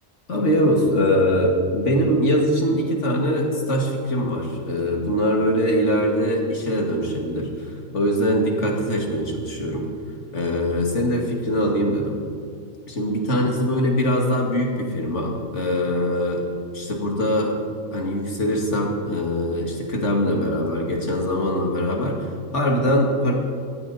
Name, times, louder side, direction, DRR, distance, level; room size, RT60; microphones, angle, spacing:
voice 1, 0.3-9.9 10.3-12.2 12.9-16.4 16.7-17.6 17.9-23.3, equal, 60° left, 0 dB, 2.5 m, -22 dB
18.0 x 14.0 x 4.2 m, 2.2 s
omnidirectional pair, 1.4 m